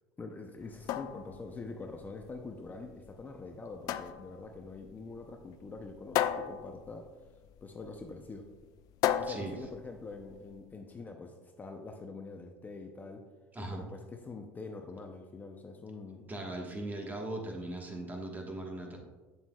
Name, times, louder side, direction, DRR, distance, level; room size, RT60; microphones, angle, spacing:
voice 1, 0.2-7.1 7.6-8.5 9.2-13.2 13.7-16.3, left 3 dB, 25° left, 4 dB, 0.6 m, -45 dB
sound 1, 0.6-10.6, left 11 dB, 55° left, 0.4 m, -36 dB
voice 2, 9.3-9.6 13.5-13.9 16.3-19.0, right 2 dB, 25° right, 2 dB, 1.4 m, -39 dB
8.0 x 7.1 x 2.4 m, 1.3 s
supercardioid pair, 95°, 7 cm